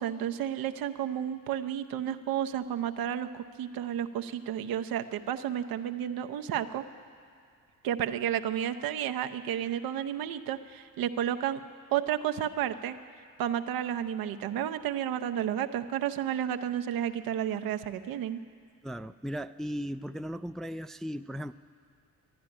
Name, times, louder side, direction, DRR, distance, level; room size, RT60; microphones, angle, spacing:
voice 1, 0.0-6.8 7.8-11.6 11.9-13.0 13.4-18.4, right 10 dB, 80° right, 8 dB, 0.7 m, -31 dB
voice 2, 18.8-21.5, equal, ahead, 10 dB, 0.3 m, -37 dB
12.5 x 11.0 x 9.9 m, 2.4 s
supercardioid pair, 55°, 35 cm